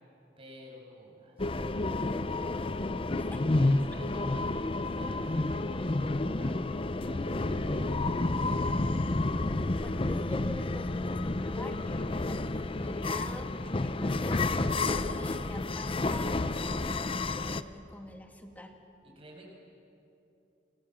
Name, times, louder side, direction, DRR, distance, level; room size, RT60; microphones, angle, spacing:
voice 1, 0.4-2.8 3.1-6.6 7.0-8.5 19.0-19.5, equal, 30° right, -1 dB, 7.2 m, -50 dB
sound 1, 1.4-17.6, left 2 dB, 30° left, 0.7 m, -30 dB
voice 2, 3.2-3.8 9.8-18.7, left 1 dB, 10° left, 3 dB, 2.4 m, -46 dB
28.5 x 26.0 x 7.6 m, 2.7 s
head